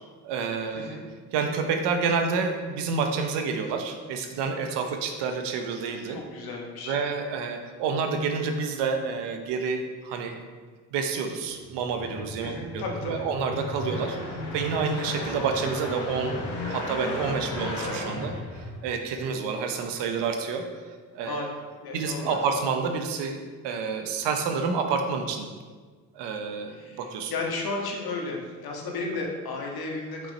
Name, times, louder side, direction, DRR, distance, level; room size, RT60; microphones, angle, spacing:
voice 1, 0.2-1.0 1.3-6.2 6.8-10.4 10.9-14.2 14.5-16.4 16.7-21.5 21.9-25.5 26.1-27.3, right 5 dB, 80° right, 5 dB, 0.9 m, -29 dB
voice 2, 6.1-7.0 12.4-13.3 21.2-21.5 21.8-22.4 26.7-30.3, left 3 dB, 60° left, 0 dB, 1.7 m, -34 dB
sound 1, 11.6-19.2, left 1 dB, 75° left, 2.1 m, -34 dB
5.8 x 5.5 x 4.2 m, 1.5 s
supercardioid pair, 65°, 41 cm